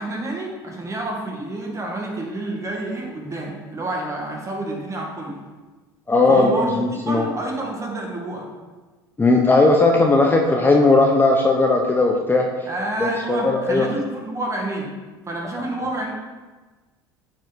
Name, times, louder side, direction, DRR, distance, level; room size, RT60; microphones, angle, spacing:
voice 1, 0.0-5.3 6.3-8.5 12.7-14.9 15.3-16.1, right 2 dB, 25° right, -1 dB, 2.0 m, -28 dB
voice 2, 6.1-7.2 9.2-12.5 13.0-13.9, left 2 dB, 15° left, 1 dB, 0.9 m, -17 dB
8.8 x 4.7 x 4.2 m, 1.3 s
hypercardioid pair, 75°, 12 cm